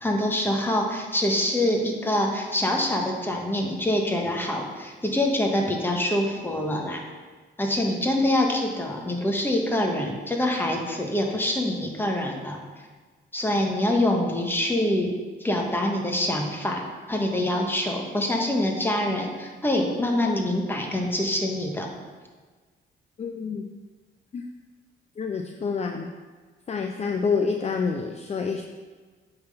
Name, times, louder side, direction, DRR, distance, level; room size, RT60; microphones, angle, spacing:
voice 1, 0.0-7.1 7.6-12.6 13.3-15.1 15.4-21.9, left 1 dB, 10° left, 1 dB, 1.4 m, -25 dB
voice 2, 23.2-23.7 24.3-24.4 25.2-26.1 26.7-28.6, left 5 dB, 35° left, 4 dB, 0.5 m, -27 dB
8.5 x 4.0 x 5.4 m, 1.4 s
cardioid pair, 90°, 20 cm